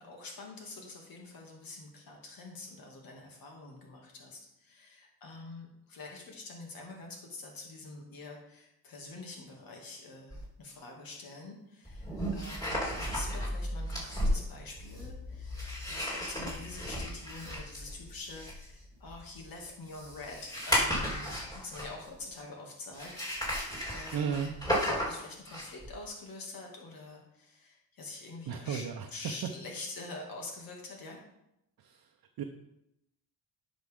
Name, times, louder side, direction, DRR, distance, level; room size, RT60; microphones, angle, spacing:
voice 1, 0.0-24.6 24.8-28.8 29.1-31.2, left 3 dB, 65° left, 0 dB, 2.5 m, -46 dB
sound 1, 10.3-10.4 11.8-22.2 22.9-25.9, equal, 10° left, 3.7 m, -34 dB
voice 2, 24.1-24.5 28.5-29.1 31.8-32.1 32.4-32.5, right 7 dB, 70° right, 3 dB, 0.9 m, -34 dB
10.5 x 6.3 x 3.7 m, 0.84 s
cardioid pair, 105°, 37 cm